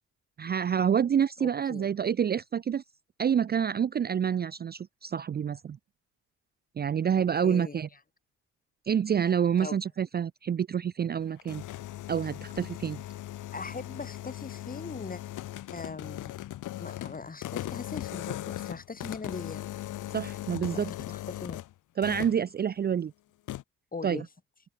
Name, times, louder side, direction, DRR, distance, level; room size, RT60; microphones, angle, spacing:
voice 1, 0.4-2.8 3.2-5.8 6.8-7.9 8.9-11.6 12.1-13.0 20.1-20.9 22.0-23.1 24.0-24.2, right 8 dB, 35° right, 0.5 m, -27 dB
voice 2, 1.4-1.9 7.2-7.8 9.6-9.8 13.5-15.2 15.7-16.3 16.8-19.7 20.7-21.6 23.9-24.3, left 4 dB, 30° left, 5.9 m, -40 dB
sound 1, 11.2-21.7 22.0-22.4 23.5-23.6, left 14 dB, 85° left, 5.1 m, -38 dB
open air
cardioid pair, 90°, 30 cm